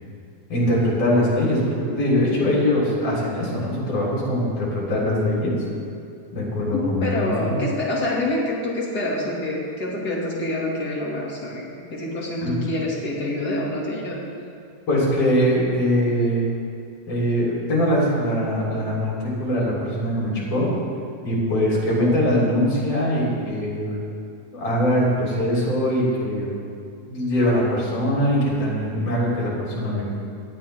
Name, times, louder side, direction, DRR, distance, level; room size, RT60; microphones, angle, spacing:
voice 1, 0.5-5.5 6.3-7.6 12.4-12.5 14.9-16.5 17.1-20.7 21.2-24.0 24.5-26.5 27.1-30.1, equal, 50° left, -5 dB, 4.8 m, -22 dB
voice 2, 6.7-14.2, left 1 dB, 35° left, -3 dB, 2.5 m, -26 dB
18.5 x 13.5 x 3.5 m, 2.5 s
omnidirectional pair, 3.6 m